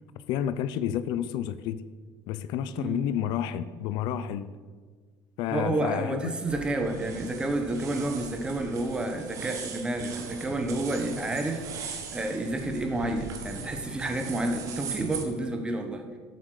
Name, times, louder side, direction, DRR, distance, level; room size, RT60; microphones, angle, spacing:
voice 1, 0.3-1.8 2.3-4.5 5.4-6.3, left 10 dB, 65° left, 0.6 m, -30 dB
voice 2, 2.8-3.1 5.5-16.2, right 2 dB, 10° right, 1.2 m, -30 dB
sound 1, 6.5-15.2, right 5 dB, 40° right, 1.7 m, -39 dB
13.0 x 7.7 x 6.5 m
cardioid pair, 160°, 8 cm